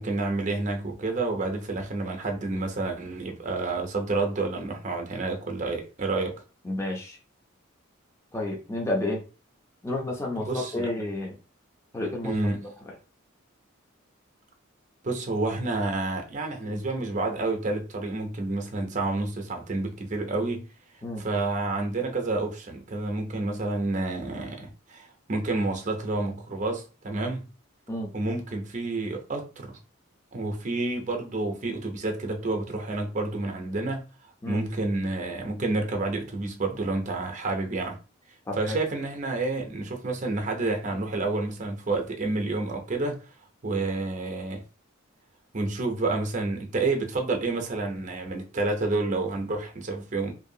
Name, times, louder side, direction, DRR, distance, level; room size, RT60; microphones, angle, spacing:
voice 1, 0.0-6.3 10.4-10.9 12.2-12.7 15.0-20.7 21.2-27.5 28.1-29.8 30.3-34.0 34.4-38.0 38.5-43.2 43.6-44.6 45.5-50.3, right 2 dB, 35° right, 0.5 m, -29 dB
voice 2, 6.6-7.2 8.3-9.2 9.8-11.4 11.9-12.3 12.9-13.0 16.6-16.8 21.0-21.2 27.9-28.1 34.4-34.6 38.5-38.8, left 1 dB, 15° left, 0.5 m, -31 dB
2.6 x 2.3 x 2.7 m
head